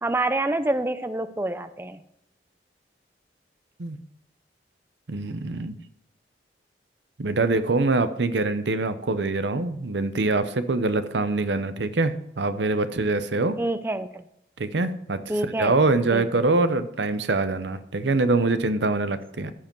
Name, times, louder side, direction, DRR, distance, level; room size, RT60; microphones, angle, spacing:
voice 1, 0.0-2.0 13.6-14.2 15.3-15.8 16.1-16.4, right 2 dB, 15° right, 11 dB, 0.4 m, -27 dB
voice 2, 5.1-5.7 7.2-13.6 14.6-15.2 15.6-19.5, right 3 dB, 85° right, 11 dB, 0.8 m, -24 dB
14.5 x 4.9 x 4.6 m, 0.77 s
head